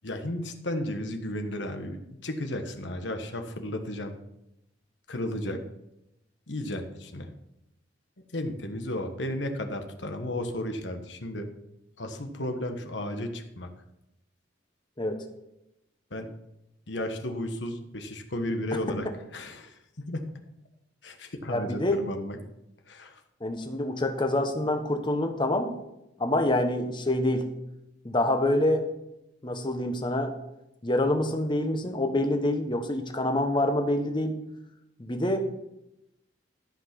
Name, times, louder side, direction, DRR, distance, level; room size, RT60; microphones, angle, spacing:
voice 1, 0.0-2.0 2.2-4.2 5.1-5.6 6.5-7.3 8.3-11.5 12.0-13.7 16.1-16.3 16.9-19.1 19.3-20.2 21.0-22.4 22.9-23.1, left 1 dB, 70° left, 6 dB, 1.3 m, -33 dB
voice 2, 21.5-22.0 23.4-25.7 26.2-27.5 28.0-28.9 29.4-30.3 30.8-34.4 35.0-35.4, left 1 dB, 25° left, 5 dB, 1.2 m, -26 dB
13.0 x 5.9 x 6.0 m, 0.87 s
head